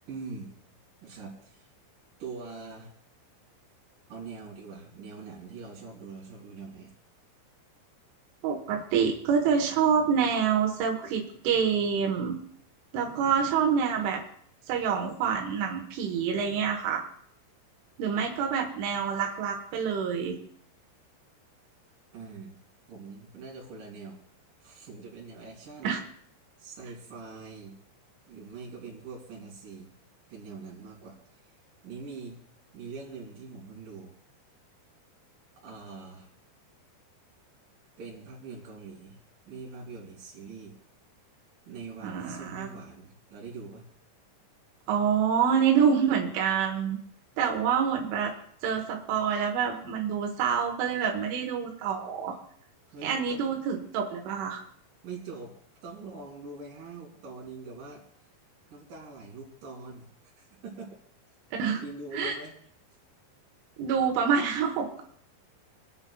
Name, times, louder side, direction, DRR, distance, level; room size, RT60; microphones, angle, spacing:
voice 1, 0.1-0.5 1.0-1.7 2.2-2.9 4.1-6.9 22.1-22.6 22.9-24.2 24.6-25.9 26.6-27.8 28.3-29.9 30.3-31.2 31.8-32.4 32.7-34.1 35.6-36.3 38.0-39.2 39.5-40.7 41.7-43.9 52.9-53.6 55.0-55.5 55.8-58.0 58.7-61.0 61.8-62.6, right 4 dB, 50° right, -3 dB, 4.6 m, -43 dB
voice 2, 8.4-12.4 12.9-14.2 14.7-17.0 18.0-20.4 25.8-26.0 42.0-42.7 44.9-47.0 47.4-48.3 48.6-52.4 53.0-54.6 61.6-61.8 62.1-62.3 63.8-65.0, right 7 dB, 90° right, 1 dB, 3.8 m, -27 dB
29.0 x 10.0 x 2.4 m, 0.64 s
omnidirectional pair, 5.4 m